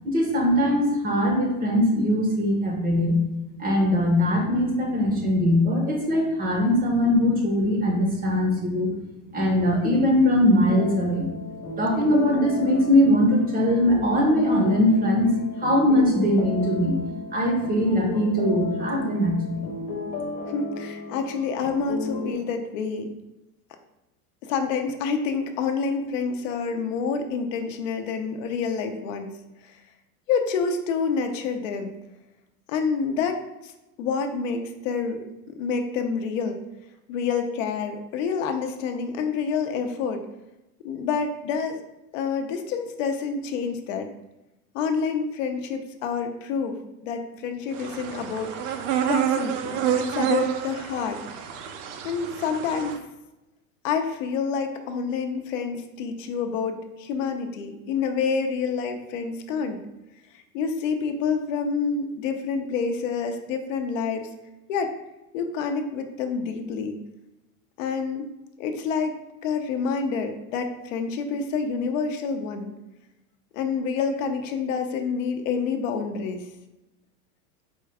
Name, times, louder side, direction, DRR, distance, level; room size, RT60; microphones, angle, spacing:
voice 1, 0.0-3.2 3.6-8.9 9.3-11.3 11.8-17.0 17.3-19.7, left 1 dB, 20° right, 1 dB, 0.7 m, -21 dB
sound 1, 10.7-22.3, left 2 dB, 20° left, 0.4 m, -33 dB
voice 2, 20.5-23.1 24.4-29.3 29.6-29.8 30.3-31.9 32.7-33.7 34.0-36.6 37.1-40.2 40.8-41.8 42.1-44.1 44.7-48.6 49.0-51.2 52.0-52.9 53.8-59.8 60.3-64.3 64.7-65.0 65.3-66.9 67.8-68.3 68.6-72.7 73.5-76.5, left 5 dB, 60° left, 6 dB, 0.7 m, -28 dB
sound 2, 47.7-53.0, right 8 dB, 55° right, 0.6 m, -28 dB
4.5 x 2.3 x 4.7 m, 0.96 s
supercardioid pair, 145°, 44 cm